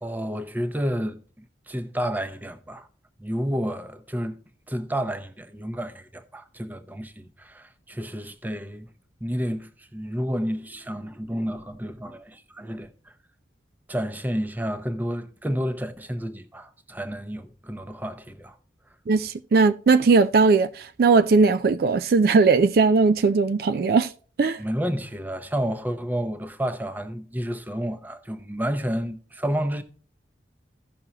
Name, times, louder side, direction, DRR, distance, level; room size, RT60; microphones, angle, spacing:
voice 1, 0.0-2.9 3.2-4.4 4.7-8.9 9.2-12.9 13.9-18.6 24.6-29.8, equal, 10° right, 0.7 m, -30 dB
voice 2, 19.1-24.1 24.4-24.6, right 4 dB, 55° right, 0.3 m, -19 dB
15.5 x 6.1 x 2.9 m
head